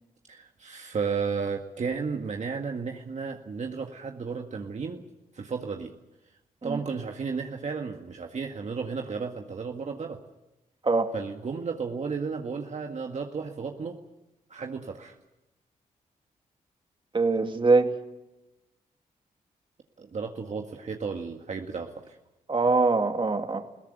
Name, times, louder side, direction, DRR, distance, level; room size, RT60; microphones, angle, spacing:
voice 1, 0.3-5.0 5.3-5.9 6.6-10.2 11.1-14.0 14.5-15.2 20.0-22.2, right 5 dB, 55° right, 2 dB, 1.9 m, -33 dB
voice 2, 17.1-17.9 22.5-23.6, right 3 dB, 35° right, 5 dB, 2.5 m, -23 dB
21.0 x 17.0 x 9.2 m, 0.97 s
cardioid pair, 60°, 15 cm